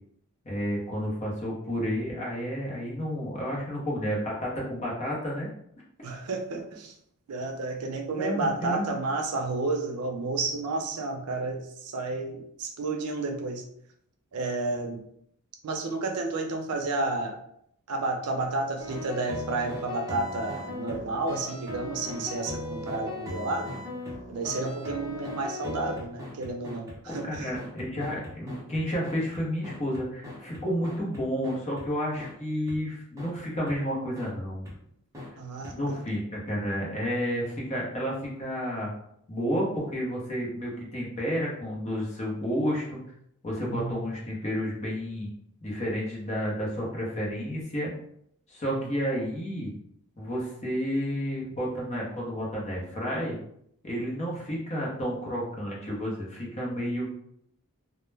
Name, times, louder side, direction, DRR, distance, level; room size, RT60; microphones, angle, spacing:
voice 1, 0.4-5.5 8.2-9.0 27.1-34.7 35.7-38.9 39.3-43.0 43.4-45.3 45.6-47.9 48.5-49.7 50.2-53.4 53.8-57.1, equal, 30° left, -3 dB, 0.7 m, -31 dB
voice 2, 6.0-6.9 7.3-13.6 14.3-15.0 15.6-17.4 17.9-23.8 24.3-27.5 35.4-36.0 43.7-44.0 48.6-48.9, right 3 dB, 85° right, 4 dB, 0.5 m, -31 dB
sound 1, 18.8-31.9 32.2-32.3 32.7-32.8 33.2-33.3 33.7-33.8 34.2-34.3 34.7-34.8 35.1-35.3 35.6-35.7, left 2 dB, 15° right, 0.6 m, -38 dB
2.2 x 2.1 x 3.2 m, 0.71 s
head